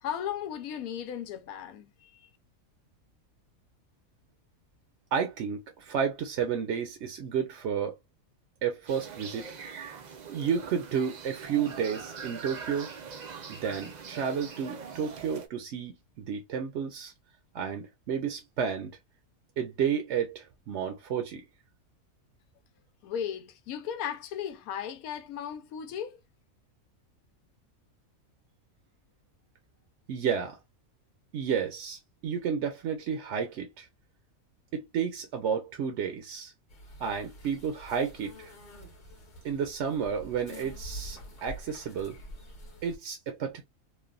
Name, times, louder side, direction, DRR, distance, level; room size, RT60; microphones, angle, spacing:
voice 1, 0.0-2.3 23.0-26.2, left 9 dB, 85° left, 1.0 m, -36 dB
voice 2, 5.1-8.0 8.6-9.5 10.3-12.9 13.5-17.1 17.5-19.0 19.6-21.4 30.1-30.6 31.3-33.9 34.7-36.5 37.0-38.5 39.4-42.2 42.8-43.6, right 7 dB, 65° right, 0.8 m, -31 dB
sound 1, 8.9-15.5, right 6 dB, 80° right, 0.4 m, -43 dB
sound 2, 36.7-43.0, right 1 dB, 40° left, 0.9 m, -46 dB
3.2 x 2.2 x 2.3 m
omnidirectional pair, 1.5 m